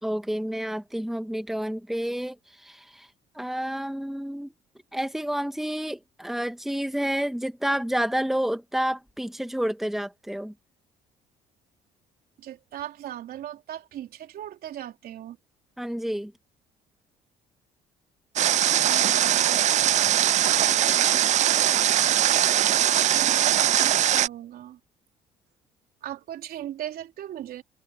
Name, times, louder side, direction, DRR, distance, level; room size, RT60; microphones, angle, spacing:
voice 1, 0.0-2.4 2.6-3.1 3.4-4.5 4.9-10.5 15.8-16.3, equal, ahead, 1.9 m, -29 dB
voice 2, 12.4-15.4 18.8-19.6 23.1-24.8 26.0-27.6, right 11 dB, 65° right, 3.6 m, -38 dB
Water, 18.4-24.3, right 11 dB, 45° right, 0.4 m, -21 dB
supercardioid pair, 65°, 16 cm